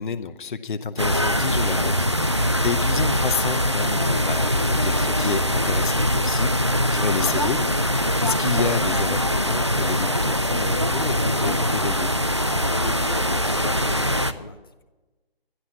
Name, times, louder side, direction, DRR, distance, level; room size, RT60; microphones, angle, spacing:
voice 1, 0.0-1.9 2.2-12.2, left 5 dB, 50° left, 10 dB, 0.8 m, -30 dB
sound 1, 1.0-14.3, equal, 30° right, 0.4 m, -22 dB
voice 2, 12.6-14.8, left 4 dB, 25° left, 9 dB, 0.6 m, -35 dB
12.5 x 11.5 x 7.1 m, 1.2 s
hypercardioid pair, 165°, 31 cm